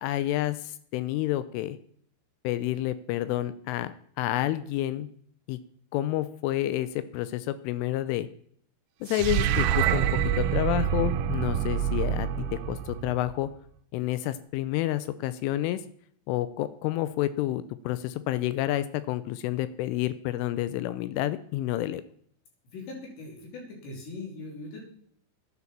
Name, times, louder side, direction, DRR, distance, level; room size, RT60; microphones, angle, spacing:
voice 1, 0.0-1.8 2.4-5.1 5.5-5.6 5.9-8.3 9.0-10.0 10.4-13.5 13.9-15.8 16.3-22.0, left 14 dB, 85° left, 14 dB, 3.1 m, -29 dB
sound 1, 9.1-13.5, right 9 dB, 80° right, 3.0 m, -26 dB
voice 2, 22.7-24.8, left 3 dB, 65° left, -1 dB, 5.3 m, -40 dB
11.0 x 10.0 x 7.3 m, 0.63 s
omnidirectional pair, 5.7 m